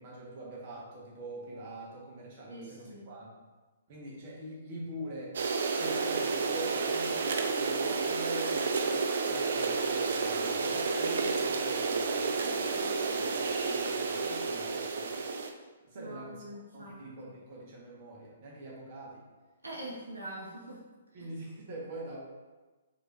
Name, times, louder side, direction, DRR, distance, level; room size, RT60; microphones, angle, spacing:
voice 1, 0.0-3.3 3.9-5.4 5.8-15.3 15.8-19.2 21.1-22.2, right 1 dB, 40° right, -4 dB, 1.2 m, -44 dB
voice 2, 2.5-3.1 15.9-17.0 19.6-20.8, right 1 dB, 80° right, -4 dB, 0.8 m, -43 dB
sound 1, 5.3-15.5, right 4 dB, 60° right, 0.4 m, -30 dB
4.8 x 3.1 x 2.5 m, 1.2 s
figure-of-eight pair, 125°, 0 cm